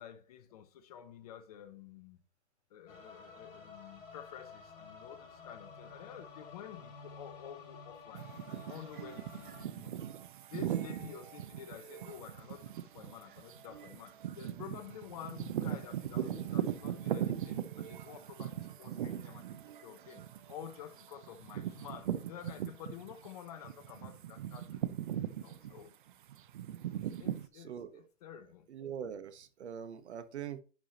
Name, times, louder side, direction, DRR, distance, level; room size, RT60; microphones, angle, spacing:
voice 1, 0.0-2.2 2.7-10.0 10.5-19.5 19.8-20.2 20.5-24.8 25.3-25.9 27.2-28.7, left 9 dB, 30° left, 0.7 m, -50 dB
sound 1, 2.9-9.6, left 5 dB, 50° left, 4.3 m, -52 dB
sound 2, 8.1-23.3 23.6-27.5, right 10 dB, 40° right, 0.6 m, -39 dB
voice 2, 27.5-28.0 28.7-30.6, right 8 dB, 55° right, 1.2 m, -43 dB
10.5 x 4.8 x 2.8 m
hypercardioid pair, 140°, 39 cm